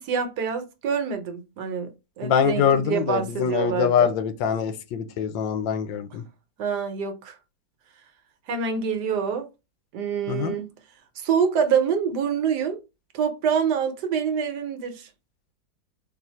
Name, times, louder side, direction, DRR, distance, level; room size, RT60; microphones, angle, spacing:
voice 1, 0.0-1.9 2.2-4.1 6.6-7.4 8.5-9.5 9.9-10.7 11.2-12.8 13.1-15.1, right 7 dB, 70° right, 1.3 m, -26 dB
voice 2, 2.2-6.2 10.3-10.6, left 8 dB, 85° left, 1.4 m, -24 dB
3.9 x 2.5 x 4.1 m
omnidirectional pair, 2.0 m